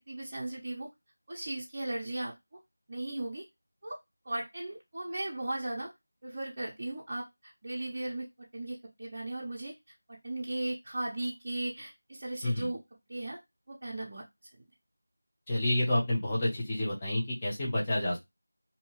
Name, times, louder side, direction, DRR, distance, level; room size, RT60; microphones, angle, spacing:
voice 1, 0.1-0.9 1.3-2.3 2.9-3.4 3.8-4.0 4.3-5.9 6.2-9.7 10.2-12.8 13.1-13.4 13.7-14.2, right 2 dB, 30° right, -5 dB, 0.6 m, -37 dB
voice 2, 15.5-18.2, left 1 dB, 15° left, -6 dB, 0.7 m, -29 dB
2.7 x 2.2 x 2.9 m, 0.19 s
figure-of-eight pair, 175°, 0 cm